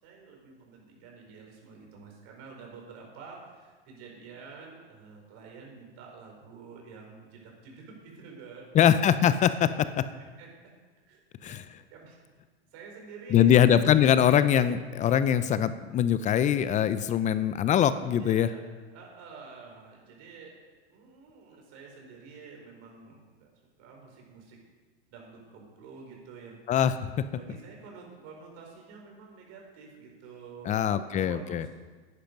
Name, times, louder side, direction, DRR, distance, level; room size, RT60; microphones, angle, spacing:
voice 1, 0.0-8.7 10.4-10.5 11.1-11.6 11.9-12.2 12.7-14.0 18.1-18.6 18.9-20.6 20.9-23.5 23.8-24.6 25.1-26.6 27.3-31.7, right 5 dB, 50° right, 0 dB, 4.6 m, -48 dB
voice 2, 8.7-9.7 10.0-10.1 11.4-11.6 13.3-18.5 26.7-26.9 30.7-31.7, left 9 dB, 25° left, 13 dB, 0.5 m, -22 dB
10.5 x 10.5 x 5.3 m, 1.4 s
hypercardioid pair, 115°, 31 cm